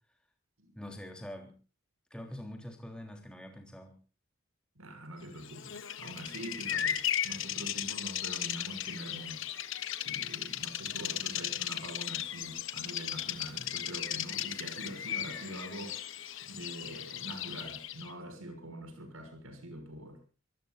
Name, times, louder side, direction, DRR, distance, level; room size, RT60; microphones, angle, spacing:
voice 1, 0.7-1.6 2.1-4.0, left 1 dB, 5° left, 3.4 m, -44 dB
voice 2, 4.7-9.4 10.0-16.1 16.4-20.2, right 1 dB, 70° right, 6.7 m, -44 dB
Bird vocalization bird call bird song, 5.4-18.1, left 11 dB, 60° left, 1.3 m, -36 dB
26.0 x 18.5 x 2.6 m
head